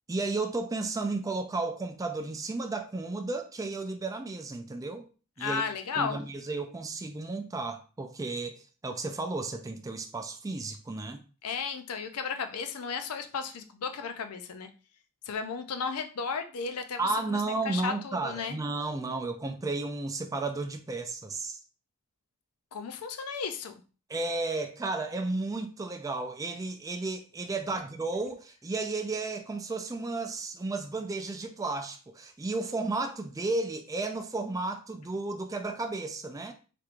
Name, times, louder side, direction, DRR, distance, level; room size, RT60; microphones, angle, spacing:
voice 1, 0.1-5.1 5.4-5.6 6.0-11.2 17.0-21.6 24.1-36.5, right 3 dB, 15° right, 0.3 m, -33 dB
voice 2, 5.4-6.2 11.4-14.7 15.3-18.6 22.7-23.7 27.7-27.8, left 5 dB, 80° left, 0.5 m, -34 dB
3.4 x 3.0 x 2.4 m
head